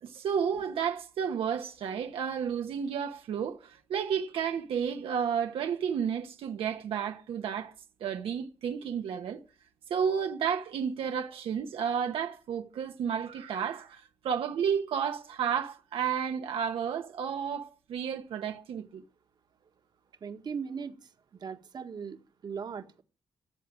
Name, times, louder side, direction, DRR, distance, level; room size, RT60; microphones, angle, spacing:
voice 1, 0.0-7.7 8.0-9.4 9.9-19.0, right 7 dB, 75° right, 1.3 m, -32 dB
voice 2, 20.2-21.0 21.4-23.0, right 6 dB, 50° right, 1.6 m, -38 dB
14.5 x 7.8 x 10.0 m
cardioid pair, 100°, 9 cm